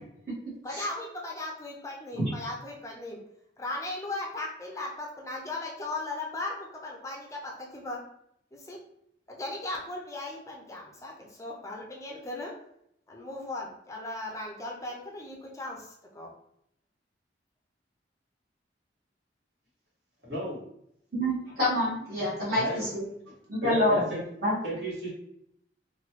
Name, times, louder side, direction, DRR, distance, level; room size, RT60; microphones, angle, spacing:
voice 1, 0.6-3.2 3.6-8.0 8.5-8.8 9.3-12.5 13.1-16.3 22.7-22.8, left 2 dB, 15° left, -1 dB, 0.4 m, -37 dB
voice 2, 20.2-20.6 22.5-22.8 23.6-24.2 24.6-25.1, equal, 70° right, -6 dB, 1.4 m, -33 dB
voice 3, 21.1-23.0 23.5-24.0 24.4-24.5, left 1 dB, 55° right, -10 dB, 1.1 m, -27 dB
2.9 x 2.2 x 2.9 m, 0.74 s
head